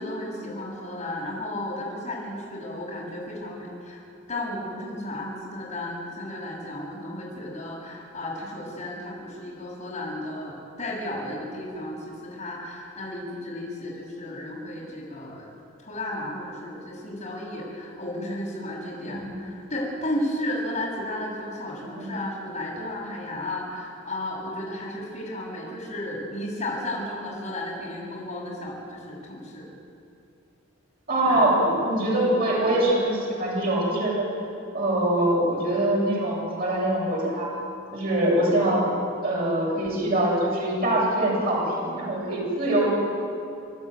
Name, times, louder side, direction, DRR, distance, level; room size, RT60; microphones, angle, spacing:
voice 1, 0.0-4.0 4.3-15.5 15.8-29.7 31.2-31.5 32.0-32.3, left 1 dB, 35° left, -5 dB, 7.1 m, -33 dB
voice 2, 19.1-19.4 22.0-22.1 31.1-34.3 34.7-37.5 37.9-38.9 39.2-42.9, right 1 dB, 50° right, -4 dB, 7.8 m, -23 dB
29.0 x 12.0 x 9.6 m, 2.6 s
head